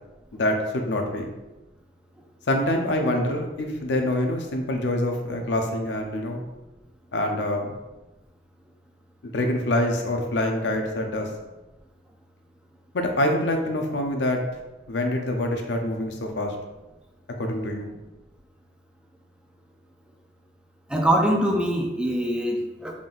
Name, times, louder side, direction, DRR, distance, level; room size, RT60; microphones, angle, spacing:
voice 1, 0.3-1.3 2.5-6.4 7.1-7.7 9.3-11.3 12.9-14.4 14.9-16.5 17.4-17.9, left 1 dB, 75° left, 3 dB, 0.6 m, -25 dB
voice 2, 20.9-22.9, right 1 dB, 5° right, 0 dB, 0.4 m, -23 dB
3.8 x 3.7 x 2.5 m, 1.1 s
head